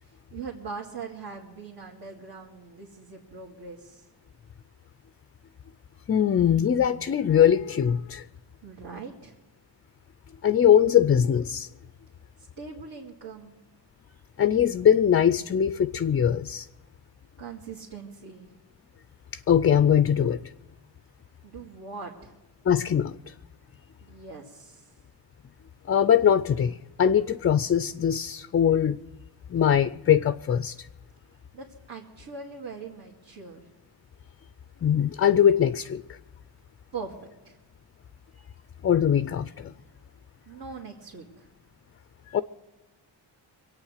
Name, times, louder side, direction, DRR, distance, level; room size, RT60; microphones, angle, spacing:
voice 1, 0.0-4.1 8.6-9.4 12.4-13.6 17.4-18.5 21.4-22.4 24.0-25.0 31.5-33.7 36.9-37.6 40.5-41.5, right 5 dB, 60° right, 2.3 m, -41 dB
voice 2, 6.1-8.2 10.4-11.7 14.4-16.7 19.5-20.4 22.7-23.2 25.9-29.0 29.5-30.9 34.8-36.0 38.8-39.7 42.3-42.4, left 9 dB, 30° left, 0.4 m, -21 dB
23.5 x 8.9 x 6.4 m
cardioid pair, 105°, 46 cm